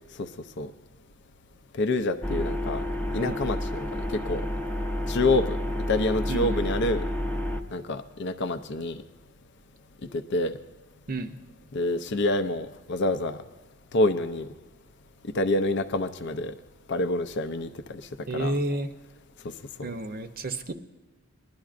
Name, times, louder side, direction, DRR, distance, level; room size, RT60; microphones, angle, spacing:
voice 1, 1.8-2.8 3.1-4.4 5.1-5.6 5.9-7.0 7.7-9.0 10.1-10.5 11.7-13.4 13.9-14.5 15.3-16.5 16.9-18.0 18.3-18.5, left 2 dB, 55° left, 9 dB, 0.5 m, -27 dB
sound 1, 2.2-7.6, left 1 dB, 10° left, 0.6 m, -30 dB
voice 2, 6.3-6.7 11.1-11.3 18.3-18.9 19.8-20.7, right 2 dB, 45° right, 8 dB, 0.7 m, -31 dB
20.5 x 11.5 x 2.5 m, 1.3 s
head